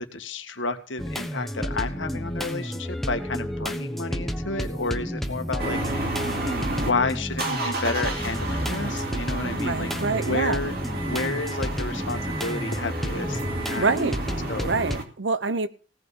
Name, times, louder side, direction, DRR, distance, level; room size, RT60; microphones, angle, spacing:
voice 1, 0.1-6.2 6.6-9.9 10.2-10.7 11.0-13.9 14.5-14.7, left 3 dB, 85° left, 1.8 m, -31 dB
sound 1, 1.0-15.0, equal, ahead, 1.1 m, -31 dB
sound 2, 5.6-6.9 7.3-15.0, right 2 dB, 55° right, 2.6 m, -31 dB
voice 2, 9.4-10.6 13.8-14.2 14.6-15.7, right 4 dB, 75° right, 0.9 m, -26 dB
17.0 x 5.7 x 8.2 m
head